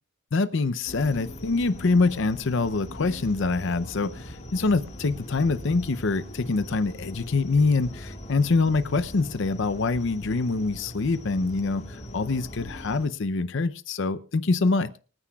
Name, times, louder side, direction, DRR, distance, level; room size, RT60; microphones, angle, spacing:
voice 1, 0.3-15.0, left 3 dB, 60° left, 0.6 m, -25 dB
sound 1, 0.9-13.1, equal, 30° left, 1.7 m, -41 dB
25.5 x 9.7 x 2.3 m
head